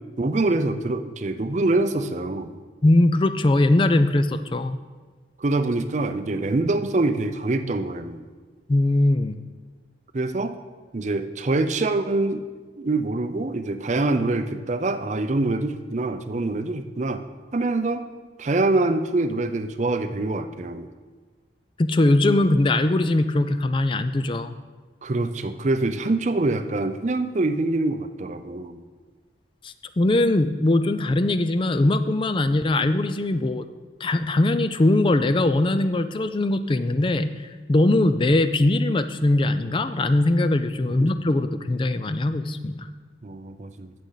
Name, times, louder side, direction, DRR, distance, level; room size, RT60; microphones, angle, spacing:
voice 1, 0.2-2.5 5.4-8.2 10.1-10.6 10.9-12.4 12.8-17.2 17.5-18.1 18.4-20.9 25.0-28.8 40.9-41.0 43.2-43.9, right 2 dB, 40° right, 9 dB, 0.5 m, -25 dB
voice 2, 2.8-4.8 8.7-9.4 21.8-24.5 29.6-33.7 34.0-37.3 37.7-42.9, left 2 dB, 30° left, 11 dB, 0.4 m, -21 dB
14.5 x 6.7 x 4.0 m, 1.4 s
head